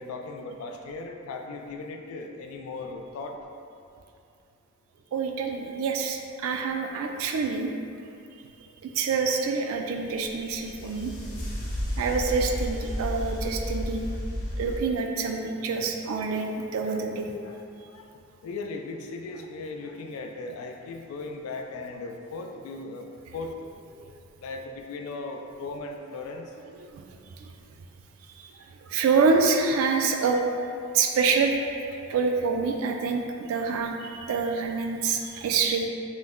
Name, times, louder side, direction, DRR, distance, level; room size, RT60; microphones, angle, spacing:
voice 1, 0.0-3.3 16.9-17.1 17.4-17.6 18.4-23.7 24.4-26.4, left 3 dB, 80° left, 3 dB, 0.3 m, -37 dB
voice 2, 5.1-7.7 8.8-11.1 12.0-14.1 14.6-17.3 24.0-24.1 26.9-27.0 28.9-30.4 30.9-31.6 32.1-35.9, right 4 dB, 70° right, 4 dB, 0.3 m, -26 dB
sound 1, 10.2-14.8, equal, 40° left, 0.6 m, -32 dB
3.1 x 2.0 x 3.6 m, 2.5 s
head